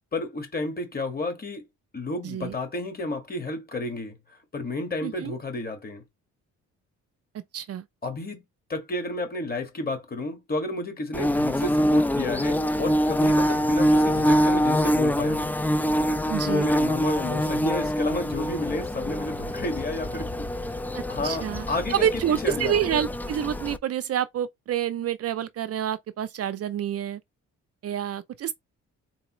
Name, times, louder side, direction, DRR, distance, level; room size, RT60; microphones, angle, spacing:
voice 1, 0.1-1.6 1.9-4.2 4.5-6.0 8.0-8.4 8.7-15.5 16.4-20.8 21.1-22.9, left 2 dB, 30° left, 1.8 m, -31 dB
voice 2, 2.2-2.5 5.0-5.4 7.5-7.8 16.3-16.7 20.9-27.2 27.8-28.5, right 10 dB, 50° right, 0.5 m, -28 dB
Bird / Buzz, 11.1-23.8, equal, 5° left, 0.3 m, -25 dB
3.9 x 3.6 x 3.0 m
cardioid pair, 90°, 30 cm